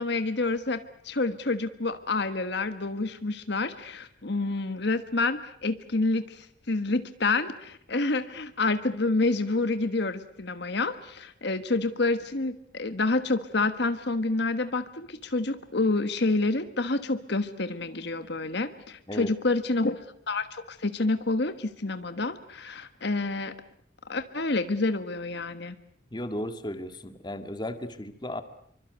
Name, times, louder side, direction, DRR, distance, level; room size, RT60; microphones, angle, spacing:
voice 1, 0.0-20.0 20.3-23.5 24.1-25.7, left 3 dB, 60° left, 10 dB, 1.4 m, -28 dB
voice 2, 26.1-28.4, left 1 dB, 20° left, 9 dB, 2.0 m, -35 dB
27.0 x 24.5 x 8.1 m, 0.67 s
head